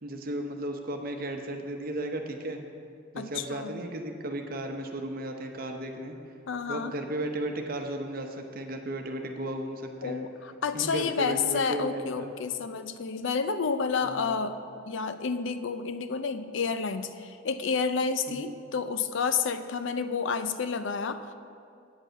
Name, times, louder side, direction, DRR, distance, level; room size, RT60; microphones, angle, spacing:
voice 1, 0.0-2.6 3.1-6.1 6.7-10.2 10.7-12.3 14.0-14.3 18.3-18.5, right 1 dB, 45° right, 4 dB, 0.9 m, -35 dB
voice 2, 3.1-3.8 6.5-6.9 10.0-21.3, left 5 dB, 65° left, 10 dB, 0.5 m, -30 dB
8.9 x 5.4 x 7.5 m, 2.4 s
head